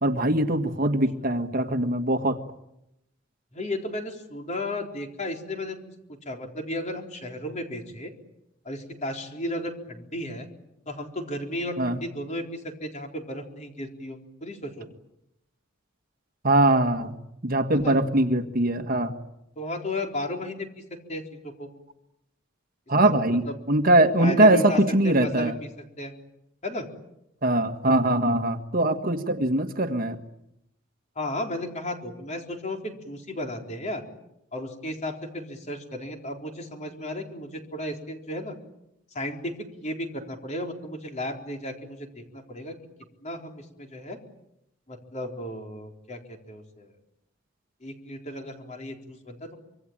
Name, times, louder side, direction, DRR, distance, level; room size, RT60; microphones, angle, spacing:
voice 1, 0.0-2.4 11.8-12.0 16.4-17.1 17.4-19.1 22.9-25.5 27.4-30.2, right 1 dB, 50° right, 7 dB, 1.7 m, -22 dB
voice 2, 3.5-5.9 6.3-8.1 8.7-10.5 10.9-14.9 17.7-18.0 19.6-20.8 21.1-21.7 23.0-23.2 23.5-23.6 24.2-25.7 26.0-26.1 26.6-26.9 31.2-34.0 34.5-38.6 39.1-39.5 39.8-42.8 43.2-44.2 44.9-46.2 46.5-46.9 47.8-49.6, left 1 dB, 35° left, 3 dB, 4.0 m, -34 dB
26.0 x 24.0 x 8.9 m, 0.83 s
head